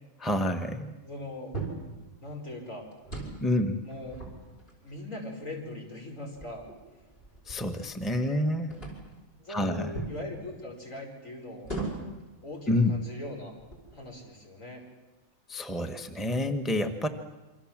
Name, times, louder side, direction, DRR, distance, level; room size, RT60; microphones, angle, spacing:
voice 1, 0.2-0.9 3.4-3.8 7.5-8.7 9.5-10.0 12.7-12.9 15.5-17.1, left 1 dB, ahead, 5 dB, 1.3 m, -28 dB
voice 2, 1.0-1.6 2.2-2.9 3.8-4.2 4.8-6.7 8.1-8.8 9.4-11.7 12.4-13.5 13.9-14.8, left 1 dB, 65° left, 1 dB, 5.5 m, -40 dB
sound 1, 1.5-1.9 2.9-3.5 3.9-5.0 5.7-5.8 6.3-8.3 8.7-9.2 9.9-10.2 11.6-12.2 12.9-13.1 13.6-14.1, right 3 dB, 45° left, 6.0 m, -39 dB
28.5 x 25.0 x 7.5 m, 1.1 s
omnidirectional pair, 1.4 m